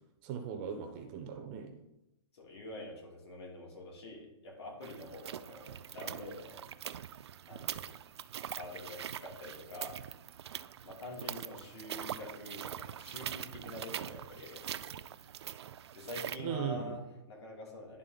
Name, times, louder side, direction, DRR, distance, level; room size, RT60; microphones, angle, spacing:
voice 1, 0.2-1.7 16.4-17.0, right 7 dB, 20° right, 4 dB, 0.5 m, -38 dB
voice 2, 2.3-6.6 7.5-7.9 8.5-10.0 10.8-15.0 15.9-18.0, left 1 dB, 65° left, -2 dB, 2.7 m, -46 dB
sound 1, 4.8-16.4, right 10 dB, 70° right, 0.4 m, -43 dB
10.5 x 3.7 x 3.9 m, 0.87 s
hypercardioid pair, 170°, 15 cm